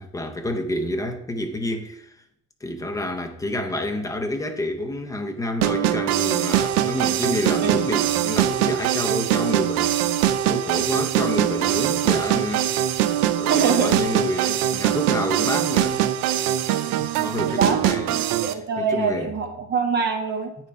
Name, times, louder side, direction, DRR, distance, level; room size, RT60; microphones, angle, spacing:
voice 1, 0.0-2.1 2.6-9.9 10.5-12.7 13.4-16.1 16.6-18.6 18.9-19.3, left 1 dB, 10° left, 0.5 m, -29 dB
sound 1, 5.6-18.5, right 11 dB, 75° right, 0.6 m, -22 dB
voice 2, 13.5-14.1 17.6-17.8 18.4-20.7, right 5 dB, 30° right, 1.0 m, -24 dB
8.6 x 3.3 x 5.1 m
cardioid pair, 165°, 33 cm